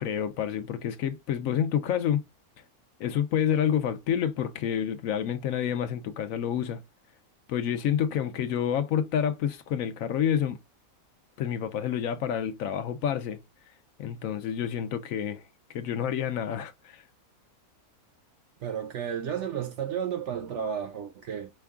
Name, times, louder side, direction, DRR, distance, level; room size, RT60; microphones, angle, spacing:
voice 1, 0.0-2.2 3.0-6.8 7.5-10.6 11.4-13.4 14.0-15.4 15.7-17.0, left 9 dB, 70° left, 1.0 m, -28 dB
voice 2, 18.6-21.5, right 8 dB, 65° right, 0.8 m, -32 dB
5.2 x 2.3 x 3.5 m
omnidirectional pair, 1.6 m